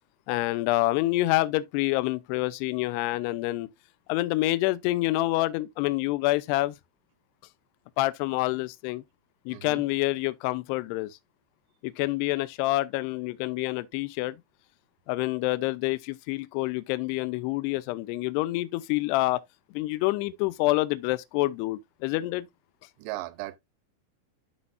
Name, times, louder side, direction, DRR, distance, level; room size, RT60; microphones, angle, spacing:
voice 1, 0.3-3.7 4.1-6.8 8.0-9.0 9.5-11.2 11.8-14.4 15.1-19.4 19.7-22.5, left 19 dB, 90° left, 2.3 m, -27 dB
voice 2, 9.5-9.8 23.0-23.6, right 17 dB, 80° right, 2.6 m, -36 dB
12.0 x 4.2 x 2.5 m
omnidirectional pair, 5.5 m